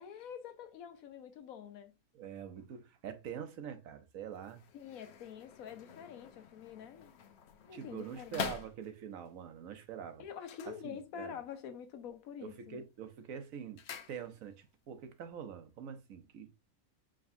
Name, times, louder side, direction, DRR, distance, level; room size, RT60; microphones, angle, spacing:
voice 1, 0.0-2.0 4.7-7.2 7.6-8.4 10.2-12.9, left 8 dB, 80° left, 1.2 m, -47 dB
voice 2, 2.1-4.6 7.7-10.2 10.7-11.4 12.4-13.8 14.1-16.5, right 8 dB, 75° right, 1.1 m, -45 dB
sound 1, 4.3-9.3 10.3-11.5 11.8-12.3 12.6-14.7 15.0-15.1, left 7 dB, 60° left, 0.8 m, -46 dB
4.9 x 3.2 x 2.6 m
omnidirectional pair, 1.5 m